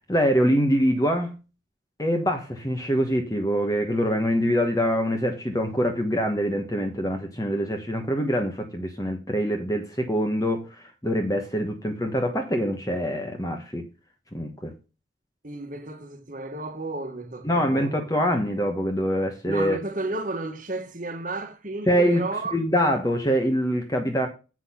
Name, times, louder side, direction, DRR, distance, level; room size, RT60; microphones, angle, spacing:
voice 1, 0.1-1.4 2.0-10.7 11.0-13.9 14.3-14.7 17.4-19.8 21.9-22.3 22.5-24.3, equal, 20° left, 1.2 m, -24 dB
voice 2, 15.4-18.0 19.4-22.5, right 2 dB, 45° right, 1.7 m, -33 dB
8.1 x 6.1 x 5.7 m
head